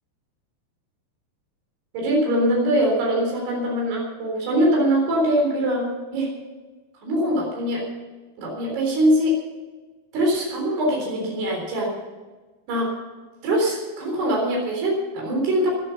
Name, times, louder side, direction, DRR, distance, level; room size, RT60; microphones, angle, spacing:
voice 1, 1.9-6.3 7.0-7.8 8.4-9.4 10.1-11.9 12.7-12.9 13.4-15.7, equal, 80° right, -1 dB, 5.9 m, -22 dB
15.5 x 12.5 x 5.9 m, 1.3 s
omnidirectional pair, 4.6 m